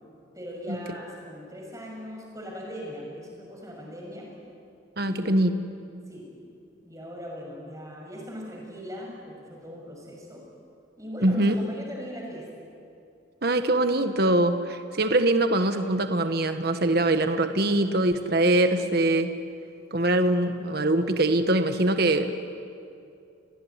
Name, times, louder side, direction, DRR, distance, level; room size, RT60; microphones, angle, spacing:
voice 1, 0.3-4.3 5.0-5.3 6.1-6.4 6.8-10.4 11.0-12.5, equal, 15° right, -1 dB, 6.6 m, -39 dB
voice 2, 5.0-5.5 11.2-11.5 13.4-19.3 19.9-22.4, right 1 dB, 50° right, 8 dB, 1.3 m, -23 dB
29.5 x 19.5 x 9.5 m, 2.5 s
head